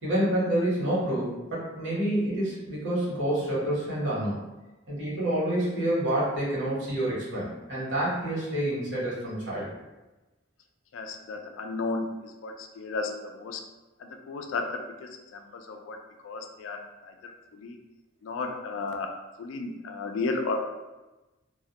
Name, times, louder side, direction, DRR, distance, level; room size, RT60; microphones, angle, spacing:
voice 1, 0.0-4.5 4.9-9.7, right 1 dB, 65° right, -7 dB, 1.0 m, -28 dB
voice 2, 10.9-13.6 14.0-16.0 16.2-17.8 18.2-19.1 19.4-20.6, left 3 dB, 75° left, 4 dB, 0.3 m, -34 dB
2.2 x 2.0 x 2.8 m, 1.1 s
head